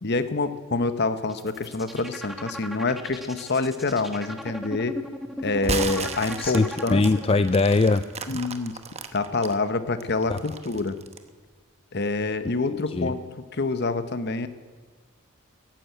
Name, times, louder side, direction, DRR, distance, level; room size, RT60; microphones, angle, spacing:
voice 1, 0.0-4.9 5.4-7.0 8.3-8.7 9.1-10.9 11.9-13.2 13.5-14.5, left 3 dB, 50° left, 11 dB, 1.0 m, -26 dB
sound 1, 1.2-7.5, equal, ahead, 1.2 m, -37 dB
sound 2, 5.6-9.5 10.0-11.3, right 4 dB, 30° right, 1.0 m, -34 dB
voice 2, 6.4-8.0 8.3-8.4 10.3-10.4 12.7-13.1, left 3 dB, 25° left, 11 dB, 0.4 m, -22 dB
14.5 x 10.5 x 9.1 m, 1.5 s
head